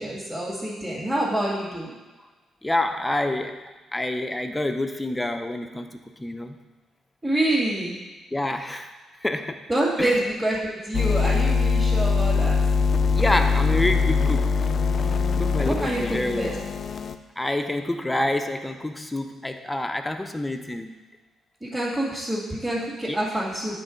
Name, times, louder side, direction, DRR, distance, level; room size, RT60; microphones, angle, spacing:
voice 1, 0.0-1.9 7.2-7.9 9.7-12.6 15.6-16.5 21.6-23.8, right 1 dB, 10° right, -9 dB, 2.1 m, -26 dB
voice 2, 2.6-6.6 8.3-8.9 9.2-9.6 10.0-10.2 13.1-14.5 15.4-16.6 17.4-21.0 23.0-23.2, left 1 dB, 10° left, 6 dB, 0.6 m, -27 dB
sound 1, 10.9-17.1, left 4 dB, 50° left, 0.4 m, -22 dB
8.8 x 3.9 x 5.1 m, 1.2 s
cardioid pair, 90°, 0 cm